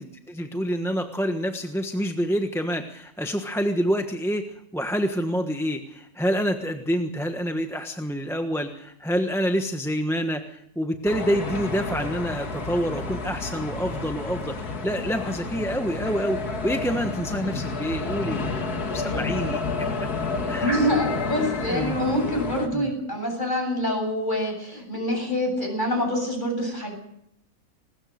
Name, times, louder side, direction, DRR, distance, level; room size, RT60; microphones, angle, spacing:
voice 1, 0.3-20.1 20.5-20.7 21.7-22.0 22.7-22.9, equal, ahead, 5 dB, 1.1 m, -27 dB
sound 1, 11.0-22.7, left 3 dB, 85° left, 2.6 m, -30 dB
voice 2, 20.6-26.9, equal, 30° left, 3 dB, 8.2 m, -26 dB
21.5 x 20.0 x 6.6 m, 0.74 s
omnidirectional pair, 1.6 m